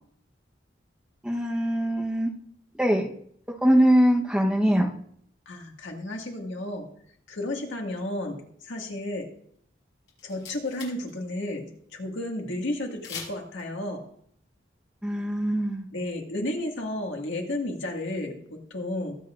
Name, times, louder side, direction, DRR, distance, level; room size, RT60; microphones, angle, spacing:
voice 1, 1.2-2.3 2.8-3.1 3.6-4.9 15.0-15.9, equal, 5° right, 0 dB, 1.0 m, -22 dB
voice 2, 5.5-6.9 7.3-9.3 10.2-14.0 15.9-19.2, left 1 dB, 90° left, 1 dB, 1.9 m, -32 dB
sound 1, 9.8-9.9 10.1-11.1 11.4-11.5 13.0-13.6, left 6 dB, 70° left, 5.8 m, -40 dB
21.5 x 8.2 x 2.5 m, 0.67 s
head